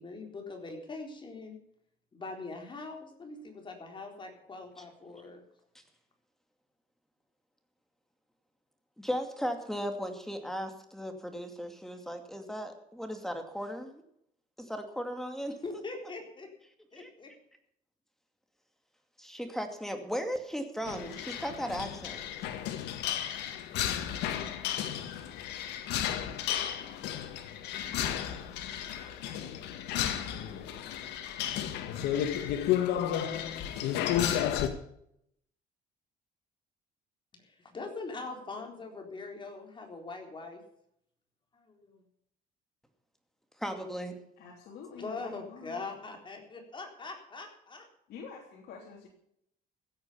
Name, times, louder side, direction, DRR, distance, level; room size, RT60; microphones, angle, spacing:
voice 1, 0.0-1.6 2.1-5.4 15.6-16.5 16.9-17.3 37.4-40.6 41.6-42.0 45.0-47.8, left 3 dB, 30° left, 3 dB, 4.0 m, -42 dB
voice 2, 9.0-14.0 14.6-15.6 17.0-17.1 19.2-22.2 43.6-44.2, equal, ahead, 6 dB, 2.4 m, -36 dB
sound 1, 20.9-34.7, left 10 dB, 90° left, 1.8 m, -33 dB
voice 3, 44.4-45.8 48.1-49.1, left 5 dB, 75° left, -2 dB, 3.2 m, -47 dB
16.0 x 9.0 x 7.1 m, 0.73 s
cardioid pair, 110°, 17 cm